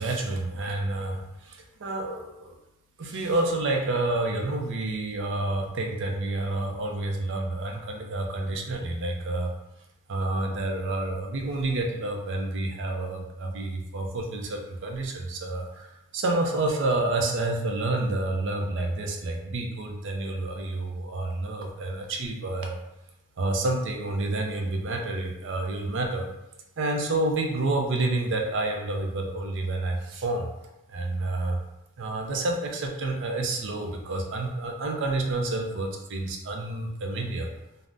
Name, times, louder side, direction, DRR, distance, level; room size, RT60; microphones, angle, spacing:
voice 1, 0.0-2.6 3.0-9.5 10.1-22.8 23.4-26.3 26.8-30.5 30.9-31.6 32.0-37.5, right 2 dB, 60° right, 2 dB, 0.5 m, -29 dB
2.5 x 2.0 x 3.3 m, 0.91 s
head